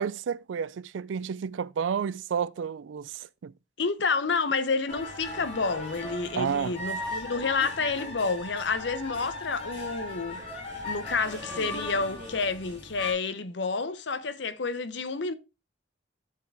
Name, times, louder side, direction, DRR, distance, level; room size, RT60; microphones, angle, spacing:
voice 1, 0.0-3.5 6.3-6.7, right 7 dB, 85° right, 0.4 m, -31 dB
voice 2, 3.8-10.4 10.8-15.3, left 4 dB, 70° left, 0.7 m, -29 dB
sound 1, 4.9-13.1, left 1 dB, 35° left, 6.2 m, -38 dB
13.0 x 4.8 x 3.4 m
head